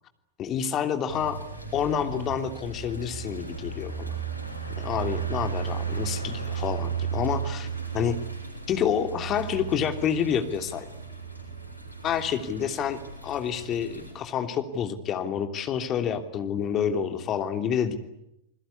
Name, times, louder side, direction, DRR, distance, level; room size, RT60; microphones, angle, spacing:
voice 1, 0.4-1.4 1.7-4.2 4.8-7.7 7.9-8.2 8.7-10.9 12.0-17.9, left 8 dB, 30° left, 7 dB, 3.0 m, -28 dB
sound 1, 1.1-14.1, right 6 dB, 85° right, 7.3 m, -35 dB
29.0 x 21.0 x 9.7 m, 0.85 s
figure-of-eight pair, 90°, 0 cm